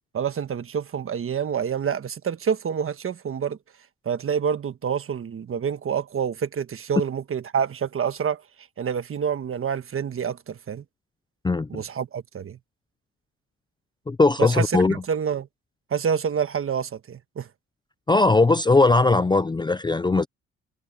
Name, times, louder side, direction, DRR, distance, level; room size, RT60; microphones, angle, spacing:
voice 1, 0.1-3.6 4.0-8.4 8.8-10.8 11.7-12.6 14.4-15.5 15.9-17.5, right 7 dB, 45° right, 1.4 m, -27 dB
voice 2, 14.1-15.0 18.1-20.3, left 3 dB, 15° left, 0.5 m, -19 dB
cardioid pair, 90°, 30 cm